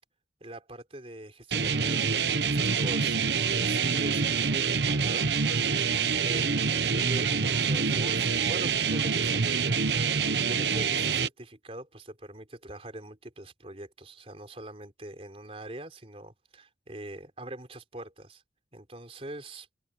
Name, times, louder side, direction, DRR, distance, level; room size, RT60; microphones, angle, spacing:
voice 1, 0.4-3.2 3.5-5.3 6.2-9.8 10.1-18.4 18.7-19.7, right 1 dB, 30° right, 4.1 m, -43 dB
sound 1, 1.5-11.3, right 5 dB, 65° right, 1.0 m, -26 dB
head